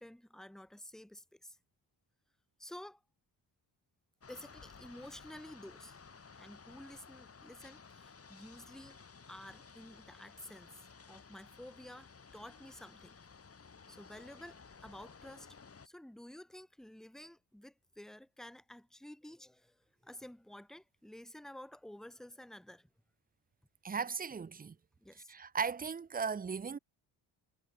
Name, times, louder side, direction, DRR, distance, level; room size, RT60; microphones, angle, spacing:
voice 1, 0.0-1.6 2.6-3.0 4.3-6.0 6.3-9.0 9.3-13.1 13.9-15.6 15.8-22.9 25.0-25.3, left 1 dB, ahead, 1.2 m, -52 dB
sound 1, 4.2-15.9, left 5 dB, 30° left, 5.9 m, -56 dB
voice 2, 23.8-24.7 25.3-26.8, right 5 dB, 20° right, 0.6 m, -37 dB
cardioid pair, 145°, 46 cm